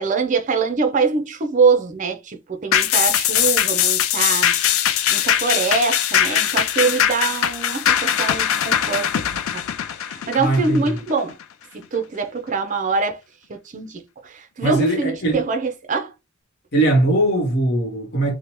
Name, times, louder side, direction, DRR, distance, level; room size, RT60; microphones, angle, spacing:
voice 1, 0.0-4.8 5.1-9.6 10.0-11.4 11.7-13.2 13.5-16.1, right 4 dB, 40° right, 0.5 m, -24 dB
sound 1, 2.7-11.4 11.8-11.9, left 10 dB, 75° left, 0.3 m, -20 dB
voice 2, 10.4-11.0 14.6-15.5 16.7-18.3, right 2 dB, 55° left, 0.9 m, -20 dB
2.7 x 2.1 x 3.0 m
head